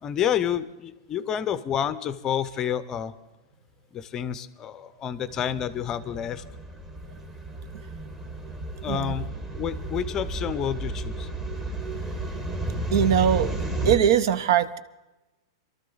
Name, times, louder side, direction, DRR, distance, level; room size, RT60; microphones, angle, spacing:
voice 1, 0.0-3.1 3.9-6.4 8.8-9.3 9.6-11.3, left 9 dB, 20° left, 14 dB, 0.6 m, -29 dB
sound 1, 5.3-14.0, right 1 dB, 15° right, 1.2 m, -32 dB
voice 2, 12.9-13.5 13.8-14.8, right 9 dB, 60° right, 15 dB, 0.7 m, -21 dB
22.5 x 13.0 x 3.9 m, 1.0 s
supercardioid pair, 160°, 2 cm